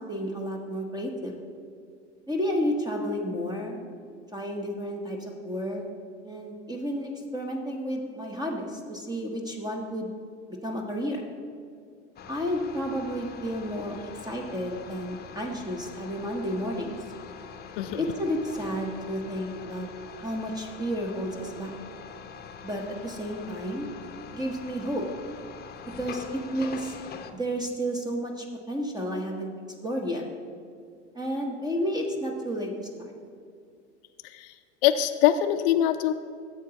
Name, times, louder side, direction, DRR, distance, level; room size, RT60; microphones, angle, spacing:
voice 1, 0.0-1.4 2.3-3.9 4.3-5.8 6.2-10.1 10.6-11.2 12.3-17.0 18.0-19.9 20.2-21.7 22.6-23.9 24.3-25.0 26.0-26.9 27.3-29.5 29.8-30.2 31.1-33.1, equal, 10° right, 2 dB, 1.0 m, -31 dB
sound 1, 12.2-27.3, left 6 dB, 25° left, 0.8 m, -44 dB
voice 2, 34.2-34.5 34.8-36.1, left 11 dB, 50° left, 7 dB, 0.5 m, -23 dB
15.0 x 7.7 x 2.9 m, 2.3 s
figure-of-eight pair, 80°, 35 cm